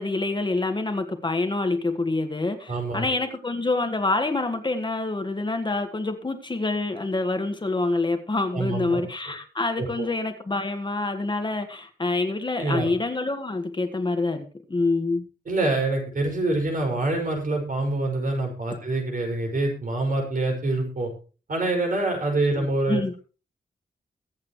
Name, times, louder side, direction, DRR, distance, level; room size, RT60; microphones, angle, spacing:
voice 1, 0.0-15.2 22.5-23.1, left 2 dB, 25° left, 6 dB, 1.6 m, -26 dB
voice 2, 2.7-3.1 8.5-9.0 9.8-10.1 12.6-12.9 15.5-21.1 21.5-23.0, right 2 dB, 50° right, 2 dB, 5.6 m, -26 dB
23.0 x 8.7 x 3.1 m, 0.35 s
wide cardioid pair, 145°, 17 cm